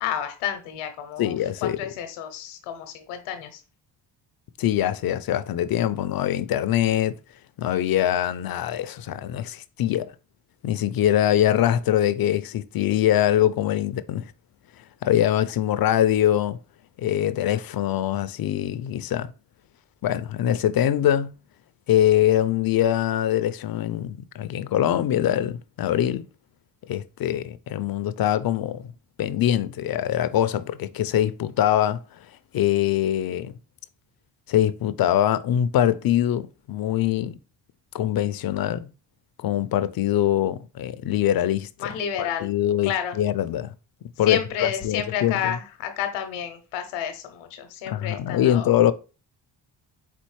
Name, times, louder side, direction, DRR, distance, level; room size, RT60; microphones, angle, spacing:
voice 1, 0.0-3.6 41.8-42.5 42.8-43.2 44.2-48.7, left 9 dB, 90° left, 0.8 m, -30 dB
voice 2, 1.2-1.8 4.6-7.2 7.6-10.1 10.6-14.3 15.0-16.6 17.0-19.3 20.0-21.4 21.9-26.3 26.9-28.9 29.2-32.0 32.5-33.6 34.5-37.4 37.9-38.9 39.4-41.9 42.2-43.7 44.2-45.5 47.9-48.9, left 11 dB, 50° left, 0.5 m, -23 dB
4.2 x 4.0 x 3.1 m
supercardioid pair, 55°, 49 cm